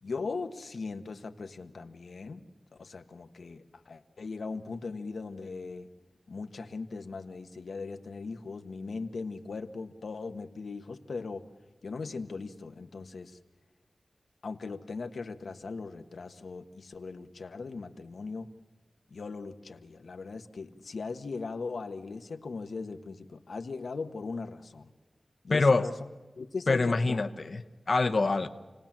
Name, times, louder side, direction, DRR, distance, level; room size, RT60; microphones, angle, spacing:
voice 1, 0.0-2.4 2.8-5.9 6.3-11.4 11.8-13.4 14.4-18.5 19.1-24.9 25.4-25.9 26.3-27.3, left 4 dB, 85° left, 6 dB, 1.2 m, -39 dB
voice 2, 25.5-25.9 26.7-27.6 27.9-28.5, left 3 dB, 55° left, 6 dB, 1.0 m, -25 dB
28.5 x 18.5 x 7.4 m, 1.3 s
wide cardioid pair, 95°, 0 cm